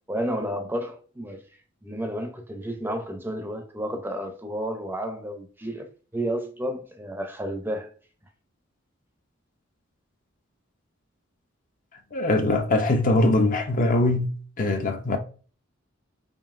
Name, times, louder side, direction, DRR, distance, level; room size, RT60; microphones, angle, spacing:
voice 1, 0.1-1.4 1.8-7.9, equal, 10° right, 0.5 m, -31 dB
voice 2, 12.1-15.2, left 2 dB, 40° left, 0.5 m, -22 dB
5.2 x 2.7 x 2.4 m
head